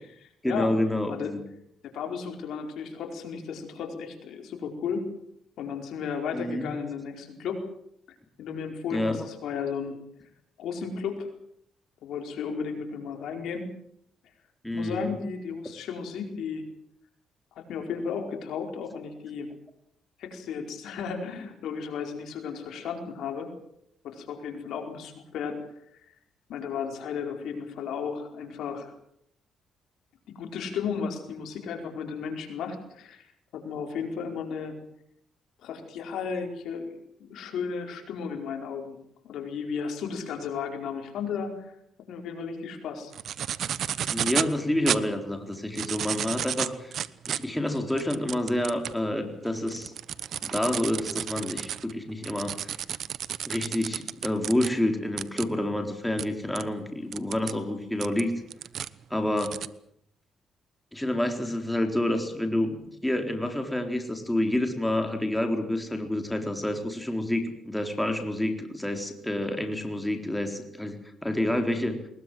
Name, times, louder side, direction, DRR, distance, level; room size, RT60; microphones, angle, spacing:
voice 1, 0.4-1.4 6.3-6.7 8.9-9.2 14.6-15.1 44.1-49.9 50.4-52.7 53.5-58.3 59.1-59.6 60.9-72.0, left 1 dB, 5° left, 5 dB, 4.0 m, -28 dB
voice 2, 1.8-5.1 5.6-7.6 8.4-9.9 10.6-11.3 12.0-13.7 14.7-16.6 17.6-19.5 20.2-23.5 24.0-25.6 26.5-28.9 30.3-33.3 33.5-34.8 35.6-39.0 39.2-41.7 42.1-43.1, left 6 dB, 80° left, 4 dB, 4.8 m, -34 dB
sound 1, 43.1-44.5 44.9-45.0 45.6-49.0 49.5-54.7 55.2-55.4 56.2-56.3 56.5-56.6 57.1-57.5 58.0-58.9 59.4-59.7, right 9 dB, 65° right, 0.9 m, -32 dB
21.5 x 21.0 x 7.8 m, 0.72 s
cardioid pair, 90°, 0 cm